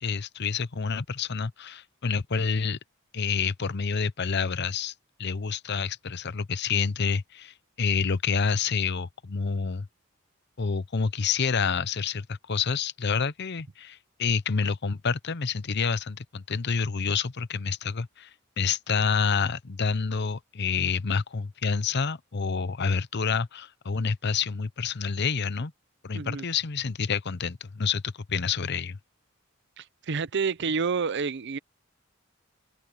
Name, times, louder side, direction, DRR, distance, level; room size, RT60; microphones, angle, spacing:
voice 1, 0.0-2.8 3.1-4.9 5.2-9.9 10.6-18.3 18.6-25.7 26.0-29.0, left 5 dB, 55° left, 0.8 m, -28 dB
voice 2, 26.1-26.4 29.8-31.6, right 5 dB, 60° right, 0.7 m, -29 dB
open air
head